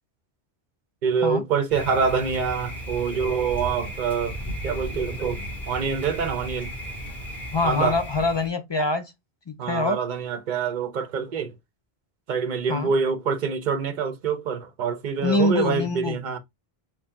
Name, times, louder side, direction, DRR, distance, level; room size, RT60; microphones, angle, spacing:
voice 1, 1.0-4.4 4.6-6.7 7.6-8.0 9.6-11.5 12.3-16.4, right 6 dB, 55° right, 0.7 m, -26 dB
Thunder, 1.7-8.5, equal, ahead, 1.7 m, -35 dB
voice 2, 7.5-9.1 9.5-10.0 12.7-12.9 15.2-16.2, left 2 dB, 45° left, 0.3 m, -24 dB
4.3 x 2.1 x 3.5 m
omnidirectional pair, 1.0 m